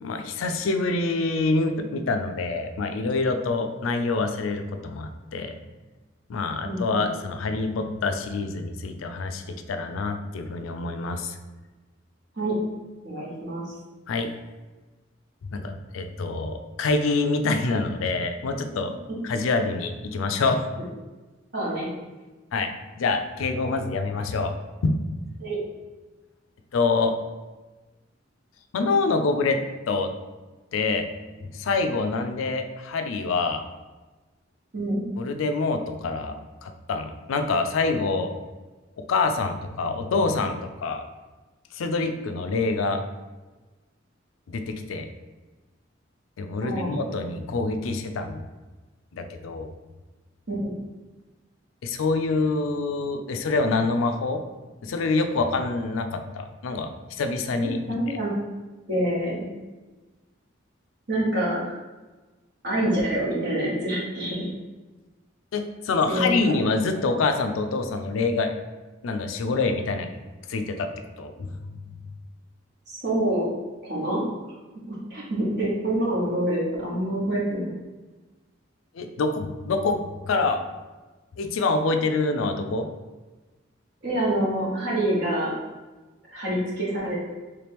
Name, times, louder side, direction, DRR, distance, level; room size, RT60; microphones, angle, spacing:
voice 1, 0.0-5.5 6.3-9.4 9.7-11.4 14.1-14.3 15.5-19.0 19.2-20.7 22.5-24.5 24.8-25.0 26.7-27.1 28.7-29.6 29.9-30.1 30.7-31.1 31.4-33.6 35.2-36.3 36.6-38.3 39.0-41.0 41.7-43.0 44.5-45.1 46.4-48.4 49.1-49.7 51.8-54.4 54.8-56.9 57.2-58.0 65.5-68.5 69.0-70.1 70.5-70.9 71.2-71.5 78.9-80.6 81.4-82.9, left 3 dB, 85° left, 7 dB, 0.4 m, -26 dB
voice 2, 6.6-7.1 12.4-12.6 13.0-13.6 21.5-21.9 25.4-25.6 34.7-35.0 46.6-46.9 50.5-50.7 57.6-58.3 58.9-59.5 61.1-61.7 62.6-64.5 66.1-66.6 72.9-73.5 73.8-74.2 74.9-77.7 84.0-85.5 86.3-87.2, right 1 dB, 55° right, -6 dB, 1.1 m, -26 dB
3.3 x 2.9 x 3.4 m, 1.2 s
head